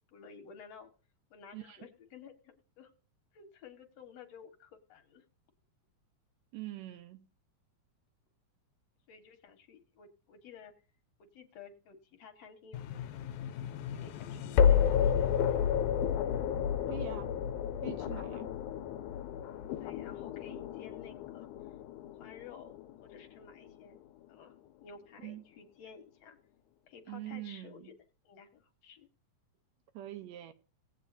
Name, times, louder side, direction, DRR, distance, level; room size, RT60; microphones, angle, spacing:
voice 1, 0.1-0.9 1.3-2.9 3.3-5.3 9.1-10.8 11.2-13.3 13.9-15.6 19.8-21.5 22.0-24.0 24.3-26.4 26.9-27.9 28.2-29.1, left 6 dB, 65° left, 2.3 m, -53 dB
voice 2, 6.5-7.3 16.9-17.3 17.8-18.5 25.2-25.4 27.1-27.9 29.9-30.5, right 14 dB, 75° right, 2.0 m, -44 dB
sound 1, 12.7-23.8, left 8 dB, 80° left, 2.1 m, -31 dB
18.0 x 8.4 x 2.7 m
omnidirectional pair, 3.5 m